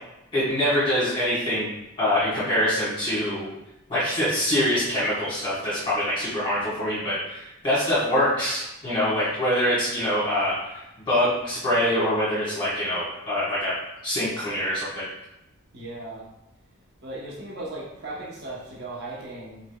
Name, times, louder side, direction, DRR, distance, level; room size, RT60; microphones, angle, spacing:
voice 1, 0.3-1.7 2.0-3.5 3.9-10.6 11.1-13.7 14.0-15.0, left 1 dB, 20° left, -10 dB, 1.1 m, -24 dB
voice 2, 15.7-16.2 17.0-19.6, right 2 dB, 50° right, -5 dB, 0.9 m, -37 dB
4.7 x 4.0 x 2.2 m, 0.91 s
head